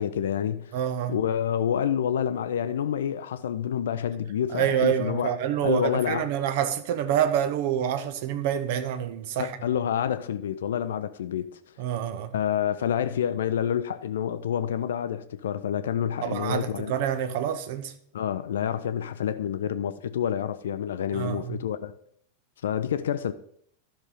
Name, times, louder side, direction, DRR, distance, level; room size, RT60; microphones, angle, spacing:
voice 1, 0.0-0.8 1.1-5.3 5.6-6.3 9.4-11.6 12.3-16.9 18.1-21.9 22.6-23.3, left 9 dB, 60° left, 0.4 m, -28 dB
voice 2, 0.7-1.2 4.5-9.6 11.8-12.3 16.2-17.9 21.1-21.6, right 9 dB, 50° right, 0.8 m, -27 dB
12.5 x 6.1 x 3.9 m
figure-of-eight pair, 90°, 0 cm